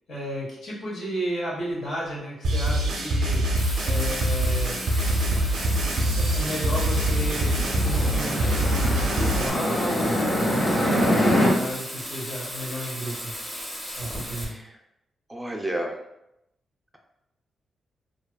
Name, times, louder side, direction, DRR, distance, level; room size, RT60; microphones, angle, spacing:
voice 1, 0.1-3.4 3.8-4.8 5.7-13.3 14.0-14.5, equal, 75° left, -7 dB, 1.1 m, -33 dB
sound 1, 2.4-9.5, right 1 dB, 85° right, 0.4 m, -24 dB
Bathtub (filling or washing), 3.5-14.4, equal, 20° left, 0.9 m, -36 dB
sound 2, 5.1-11.5, equal, 50° left, 0.9 m, -26 dB
voice 2, 10.6-11.0 14.4-14.7 15.3-15.9, right 1 dB, 10° right, 1 dB, 0.3 m, -32 dB
2.7 x 2.3 x 2.2 m, 0.86 s
cardioid pair, 75°, 0 cm